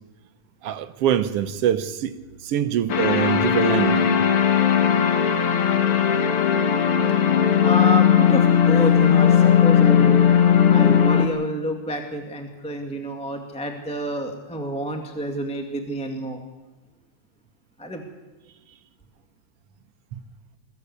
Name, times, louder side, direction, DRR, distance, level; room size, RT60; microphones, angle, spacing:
voice 1, 0.6-2.1 2.4-4.2 20.1-20.2, right 10 dB, 70° right, 1.5 m, -24 dB
sound 1, 2.9-11.3, left 8 dB, 55° left, 2.0 m, -17 dB
voice 2, 7.6-10.2 10.7-16.4 17.8-18.0, right 1 dB, 5° left, 1.5 m, -29 dB
22.0 x 15.0 x 8.3 m
omnidirectional pair, 3.5 m